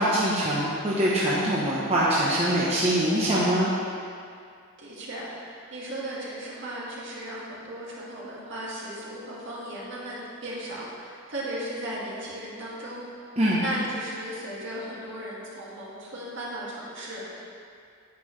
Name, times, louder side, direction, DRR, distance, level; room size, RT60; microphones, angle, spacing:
voice 1, 0.0-3.7 13.4-13.6, right 1 dB, 30° right, -7 dB, 1.0 m, -23 dB
voice 2, 4.8-13.3 13.6-17.4, right 1 dB, 60° right, -7 dB, 2.2 m, -36 dB
9.5 x 8.5 x 3.2 m, 2.4 s
head